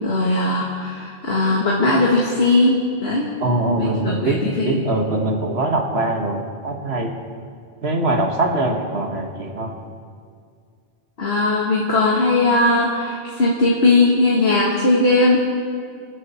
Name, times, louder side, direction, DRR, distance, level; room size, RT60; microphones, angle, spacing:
voice 1, 0.0-3.3 3.8-4.8 11.2-15.5, left 2 dB, 80° left, -4 dB, 2.1 m, -18 dB
voice 2, 3.4-7.1 7.8-9.7, right 2 dB, 85° right, 2 dB, 1.9 m, -22 dB
26.5 x 9.6 x 4.4 m, 2.1 s
omnidirectional pair, 1.0 m